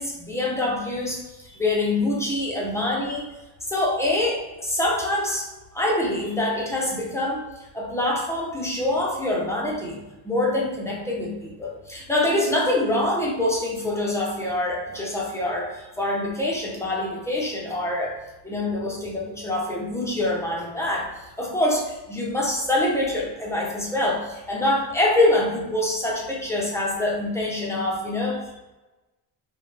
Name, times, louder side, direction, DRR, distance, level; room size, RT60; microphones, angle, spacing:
voice 1, 0.0-3.2 3.6-7.4 7.7-10.0 10.2-18.2 18.4-21.1 21.4-28.6, left 1 dB, 5° left, -3 dB, 0.9 m, -25 dB
5.4 x 2.4 x 3.3 m, 1.1 s
cardioid pair, 155°, 42 cm